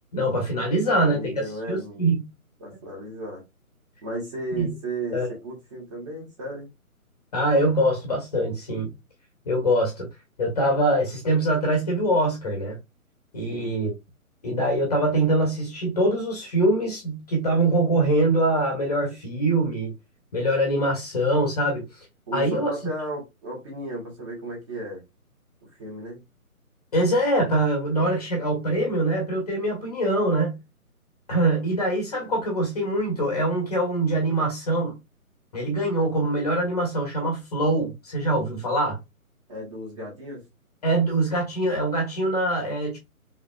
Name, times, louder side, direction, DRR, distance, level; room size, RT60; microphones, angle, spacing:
voice 1, 0.1-2.3 4.6-4.7 5.1-5.3 7.3-8.9 9.5-10.1 10.4-12.8 13.3-13.9 14.4-19.9 20.3-21.9 22.3-22.7 26.9-30.6 31.3-35.0 35.5-39.0 40.8-43.0, right 1 dB, 25° left, 1.0 m, -23 dB
voice 2, 0.8-2.1 2.6-3.4 4.0-6.7 13.5-13.7 22.3-25.0 25.6-26.2 39.5-40.4, right 1 dB, 20° right, 1.5 m, -34 dB
4.7 x 3.3 x 2.2 m
figure-of-eight pair, 145°, 44 cm